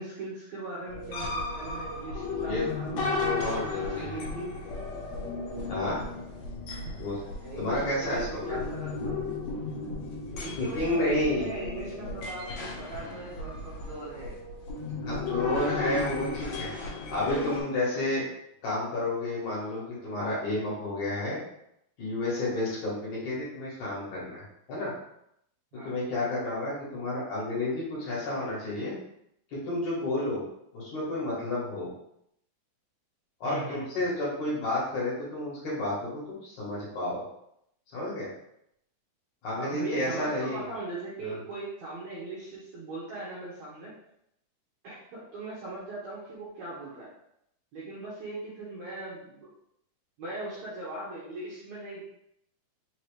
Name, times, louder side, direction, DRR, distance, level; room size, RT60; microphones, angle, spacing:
voice 1, 0.0-4.6 6.7-7.0 7.4-9.2 10.3-14.4 23.2-23.4 25.7-26.3 33.4-33.9 39.5-43.9 44.8-47.1 47.7-49.5 50.2-52.0, right 2 dB, 65° right, -8 dB, 1.9 m, -39 dB
sound 1, 0.9-17.6, left 3 dB, 85° left, 1.5 m, -35 dB
voice 2, 3.2-4.1 5.7-6.0 7.0-7.2 7.6-8.6 10.6-11.5 15.0-16.7 17.1-18.2 18.6-21.4 22.0-24.4 24.7-24.9 25.8-28.9 29.6-30.4 30.7-31.9 33.4-37.2 37.9-38.3 39.4-40.7 41.2-41.4, left 1 dB, 60° left, -7 dB, 2.5 m, -31 dB
5.6 x 2.9 x 3.2 m, 0.76 s
omnidirectional pair, 4.4 m